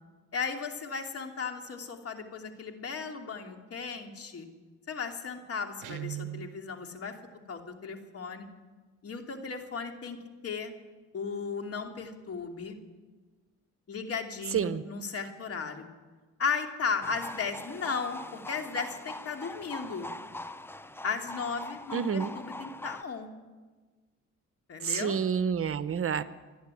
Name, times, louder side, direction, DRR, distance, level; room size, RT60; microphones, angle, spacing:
voice 1, 0.3-4.5 4.9-7.2 7.5-8.5 9.0-10.7 11.1-12.8 13.9-15.9 16.4-20.1 21.0-23.3 24.7-25.2, left 5 dB, 50° left, 4 dB, 2.9 m, -35 dB
Guitar, 5.8-6.6, right 13 dB, 85° right, 0.6 m, -38 dB
voice 2, 14.5-14.8 21.9-22.3 24.8-26.2, right 7 dB, 45° right, 14 dB, 0.9 m, -28 dB
sound 1, 17.0-23.0, left 1 dB, 10° left, 0.7 m, -42 dB
26.5 x 10.0 x 9.7 m, 1.3 s
cardioid pair, 90°, 30 cm